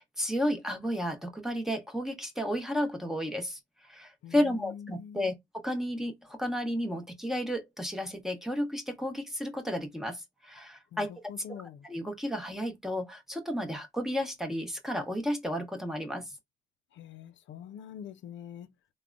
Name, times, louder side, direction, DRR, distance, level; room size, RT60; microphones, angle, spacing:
voice 1, 0.0-3.6 3.8-5.4 5.6-11.1 11.5-11.6 11.8-16.3, equal, ahead, 0.9 m, -32 dB
voice 2, 4.2-5.3 10.9-11.9 16.9-18.7, left 9 dB, 70° left, 0.4 m, -45 dB
3.5 x 2.1 x 2.5 m
cardioid pair, 90°, 20 cm